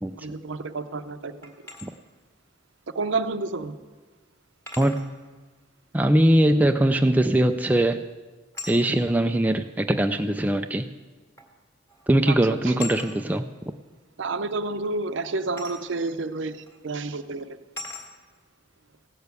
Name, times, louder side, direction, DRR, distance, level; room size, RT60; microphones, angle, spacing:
voice 1, 0.2-1.5 2.9-3.7 12.3-12.4 12.7-12.8 14.2-17.6, right 3 dB, 70° right, 11 dB, 0.6 m, -30 dB
sound 1, 1.4-1.9 3.4-3.5 4.7-5.1 7.3-7.6 8.5-8.8 10.0-10.1 11.4-11.6 11.9-12.1 12.8-13.1 15.6-15.8 16.6-16.8 17.8-18.1, left 3 dB, 10° left, 1.7 m, -39 dB
voice 2, 5.9-8.1 8.7-10.9 12.1-13.4, right 1 dB, 10° right, 6 dB, 0.3 m, -21 dB
16.5 x 6.9 x 8.1 m, 1.4 s
head